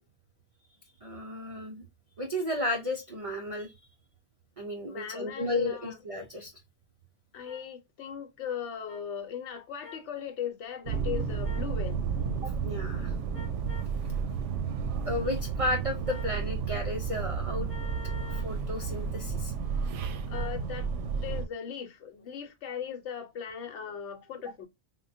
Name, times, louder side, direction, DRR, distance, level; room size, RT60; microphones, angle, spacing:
voice 1, 1.0-1.8 2.2-3.7 4.6-6.5 12.4-13.1 15.0-17.7 18.3-19.5, left 1 dB, 45° right, 0.4 m, -33 dB
voice 2, 4.9-6.0 7.3-12.0 20.3-20.9 21.2-24.7, left 8 dB, 80° left, 1.0 m, -38 dB
sound 1, 7.4-7.6 8.9-9.0 9.8-10.1 11.4-11.7 13.3-13.9 16.0-16.4 17.7-18.5 20.3-20.6, left 5 dB, 35° left, 0.6 m, -47 dB
sound 2, 10.9-21.5, right 6 dB, 90° right, 0.9 m, -32 dB
3.6 x 2.1 x 2.6 m
omnidirectional pair, 1.2 m